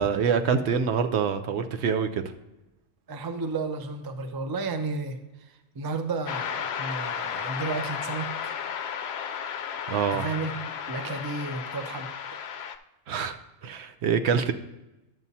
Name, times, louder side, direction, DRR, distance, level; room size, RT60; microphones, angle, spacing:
voice 1, 0.0-2.2 9.9-10.3 13.1-13.4 13.6-14.5, right 6 dB, 65° right, 9 dB, 0.8 m, -25 dB
voice 2, 3.1-5.2 5.7-8.5 10.1-10.6 10.9-12.4, right 3 dB, 35° right, 7 dB, 0.3 m, -32 dB
sound 1, 6.3-12.8, left 8 dB, 65° left, 0.7 m, -34 dB
11.0 x 7.2 x 2.7 m, 0.97 s
omnidirectional pair, 1.3 m